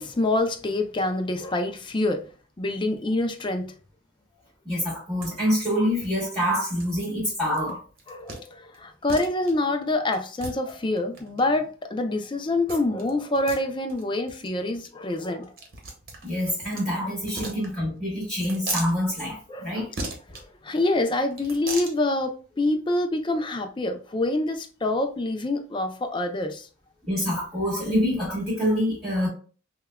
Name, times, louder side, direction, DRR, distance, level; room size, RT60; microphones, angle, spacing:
voice 1, 0.0-2.3 2.6-3.7 8.1-15.5 17.4-17.5 19.5-19.7 20.3-26.7, left 2 dB, 25° left, 0.4 m, -26 dB
voice 2, 4.6-7.8 16.2-19.9 27.0-29.3, equal, 5° right, 1.8 m, -26 dB
sound 1, 5.2-5.3 5.6-5.7 6.0-6.1 6.8-7.0 7.5-7.7 8.0-8.4 8.7-8.8 9.1-9.5 10.1-11.4 12.7-13.1 13.3-13.6 13.9-14.0 14.3-14.5 14.7-14.9 15.2-16.8 17.2-18.0 18.4-18.9 20.0-20.4 21.3-21.9, right 3 dB, 50° right, 1.0 m, -37 dB
5.6 x 2.2 x 2.2 m
head